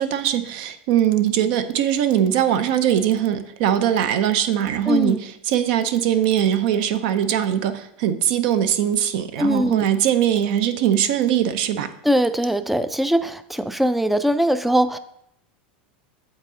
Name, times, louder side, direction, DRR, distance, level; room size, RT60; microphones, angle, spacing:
voice 1, 0.0-11.9, right 10 dB, 65° right, 11 dB, 0.6 m, -21 dB
voice 2, 4.9-5.2 9.4-9.8 12.0-15.0, equal, 5° right, 12 dB, 0.3 m, -21 dB
8.1 x 4.0 x 3.7 m, 0.75 s
supercardioid pair, 125°, 5 cm